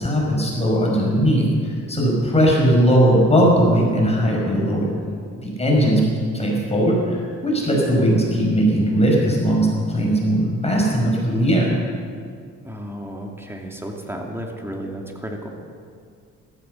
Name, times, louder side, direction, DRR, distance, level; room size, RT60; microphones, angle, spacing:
voice 1, 0.0-4.9 5.3-6.0 6.3-11.7, equal, 20° left, -2 dB, 5.7 m, -19 dB
voice 2, 5.8-6.1 12.6-15.5, equal, 10° right, 1 dB, 2.4 m, -32 dB
14.5 x 14.0 x 7.0 m, 2.2 s
cardioid pair, 90°, 30 cm